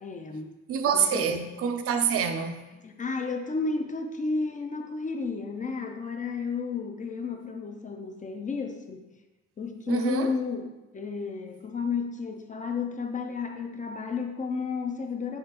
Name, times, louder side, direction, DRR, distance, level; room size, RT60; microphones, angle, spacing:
voice 1, 0.0-0.6 0.9-1.4 2.7-9.1 9.6-15.4, left 4 dB, 25° left, 0.3 m, -32 dB
voice 2, 0.7-2.7 9.9-10.3, right 6 dB, 50° right, 0.4 m, -26 dB
3.6 x 3.3 x 2.8 m
cardioid pair, 90°, 30 cm